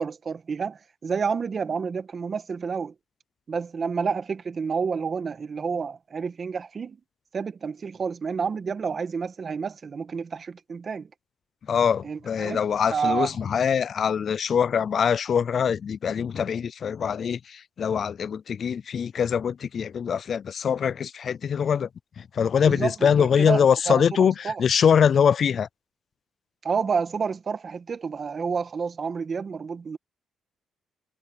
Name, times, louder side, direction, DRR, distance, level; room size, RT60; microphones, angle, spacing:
voice 1, 0.0-2.9 3.5-7.0 7.3-11.1 12.0-12.6 12.9-13.3 22.6-24.6 26.6-30.0, right 5 dB, 40° right, 1.9 m, -29 dB
voice 2, 11.7-21.9 22.2-25.7, left 7 dB, 50° left, 0.4 m, -23 dB
cardioid pair, 90°, 0 cm